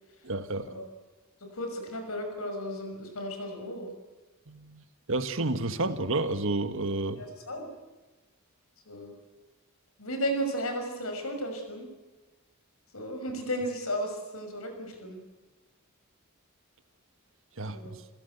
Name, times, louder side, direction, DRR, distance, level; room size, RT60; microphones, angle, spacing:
voice 1, 0.2-0.7 4.5-4.8 5.1-7.2 17.6-18.0, right 2 dB, 65° right, 10 dB, 1.6 m, -30 dB
voice 2, 1.4-3.9 7.2-7.7 8.9-9.1 10.0-11.9 12.9-15.2 17.7-18.0, equal, 80° left, 5 dB, 6.1 m, -34 dB
29.0 x 16.0 x 8.2 m, 1.2 s
head